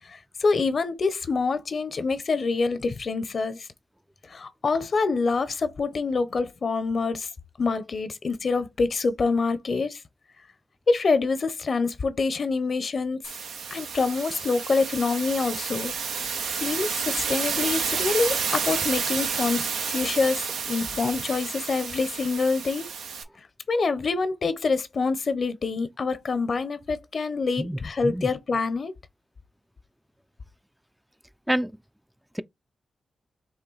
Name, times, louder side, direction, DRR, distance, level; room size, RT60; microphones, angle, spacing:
voice 1, 0.1-3.7 4.3-7.3 7.6-10.0 10.9-13.2 13.7-15.9 16.2-22.9 23.7-28.9, left 4 dB, 60° left, 0.7 m, -26 dB
sound 1, 13.2-23.2, right 6 dB, 85° right, 0.6 m, -30 dB
voice 2, 27.6-28.3 31.5-31.7 32.3-32.4, equal, 5° right, 0.3 m, -28 dB
5.7 x 2.3 x 3.9 m
supercardioid pair, 45°, 0 cm